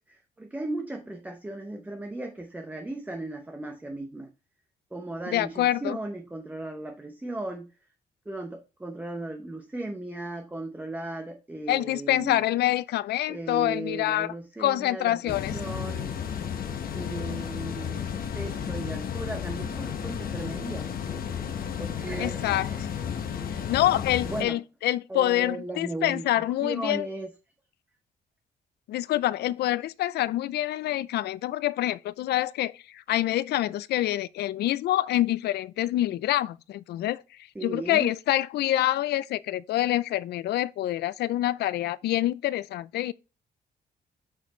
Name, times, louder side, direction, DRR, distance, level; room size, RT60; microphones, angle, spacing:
voice 1, 0.1-4.3 4.9-7.7 8.3-12.4 13.3-16.2 16.9-20.9 21.8-22.9 23.3-23.7 24.2-24.6 25.1-27.3 37.5-38.1, right 2 dB, 10° right, 0.8 m, -36 dB
voice 2, 5.3-6.0 11.7-15.5 22.2-22.7 23.5-27.1 28.9-37.2 37.6-43.1, left 14 dB, 75° left, 0.4 m, -26 dB
sound 1, 15.3-24.4, left 8 dB, 60° left, 1.0 m, -33 dB
6.3 x 5.8 x 3.0 m
cardioid pair, 115°, 17 cm